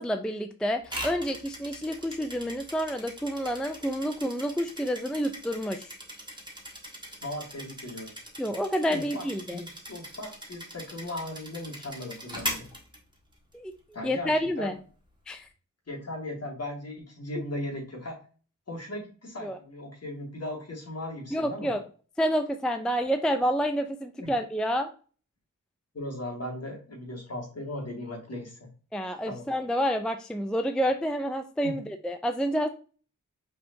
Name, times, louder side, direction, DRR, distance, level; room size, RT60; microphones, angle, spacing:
voice 1, 0.0-5.9 8.4-9.6 13.5-13.7 14.0-14.8 15.3-15.5 19.4-19.6 21.3-21.8 22.2-24.9 28.9-32.7, equal, 5° left, 7 dB, 0.4 m, -29 dB
sound 1, 0.9-13.5, equal, 15° right, 1.4 m, -41 dB
voice 2, 7.2-8.1 8.9-12.7 13.9-14.7 15.9-18.2 18.7-21.7 24.2-24.3 25.9-28.6 29.2-29.5 31.6-31.8, left 1 dB, 50° left, -2 dB, 2.2 m, -37 dB
5.8 x 3.5 x 2.6 m, 0.39 s
wide cardioid pair, 85°, 32 cm